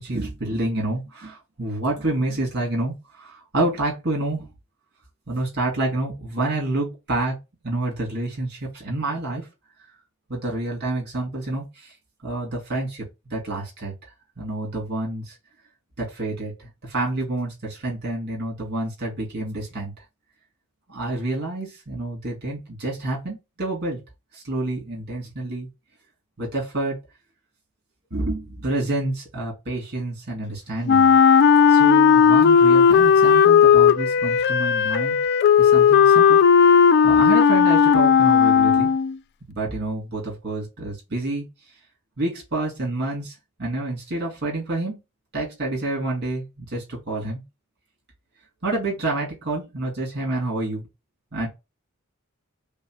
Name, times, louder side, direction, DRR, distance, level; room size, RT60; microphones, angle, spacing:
voice 1, 0.0-4.5 5.3-7.4 7.6-9.5 10.3-11.9 12.2-13.9 14.4-15.3 16.0-19.9 20.9-24.0 24.3-25.7 26.4-27.0 28.1-31.2 31.7-35.2 35.6-38.9 39.5-41.5 42.2-45.0 45.3-47.4 48.6-50.8 51.3-51.5, right 2 dB, 50° right, 2.4 m, -28 dB
Wind instrument woodwind instrument, 30.9-39.2, left 7 dB, 50° left, 0.3 m, -15 dB
5.2 x 2.1 x 4.6 m
head